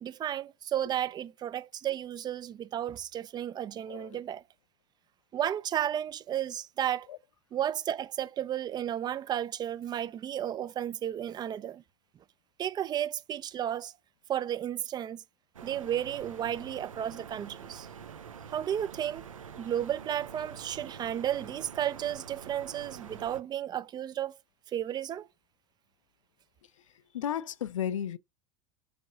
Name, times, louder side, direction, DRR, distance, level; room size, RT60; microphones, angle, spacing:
voice 1, 0.0-4.4 5.3-7.1 7.5-11.8 12.6-13.9 14.3-15.2 15.6-17.9 18.5-19.3 19.6-24.4 24.7-25.3, right 10 dB, 25° right, 0.4 m, -33 dB
sound 1, 15.5-23.4, right 7 dB, 75° right, 0.7 m, -46 dB
voice 2, 27.1-28.2, left 9 dB, 70° left, 0.5 m, -33 dB
4.8 x 4.3 x 5.0 m
figure-of-eight pair, 80°, 17 cm